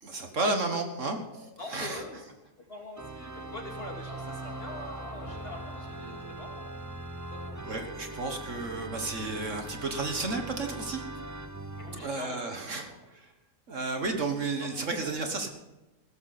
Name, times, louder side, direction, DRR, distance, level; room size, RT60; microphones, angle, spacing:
voice 1, 0.0-2.0 7.6-11.0 12.0-13.3 13.7-15.5, right 3 dB, 55° right, 5 dB, 1.8 m, -32 dB
voice 2, 1.3-2.2 2.7-6.7 7.3-8.1 11.8-12.4 12.9-13.0 14.6-15.1, left 2 dB, 40° left, 0 dB, 2.9 m, -44 dB
Organ, 3.0-12.1, right 2 dB, 20° right, 0.5 m, -41 dB
sound 1, 3.0-3.1 3.7-3.8 4.1-6.5, equal, 85° right, 7.6 m, -47 dB
17.0 x 13.0 x 4.2 m, 1.0 s
omnidirectional pair, 1.6 m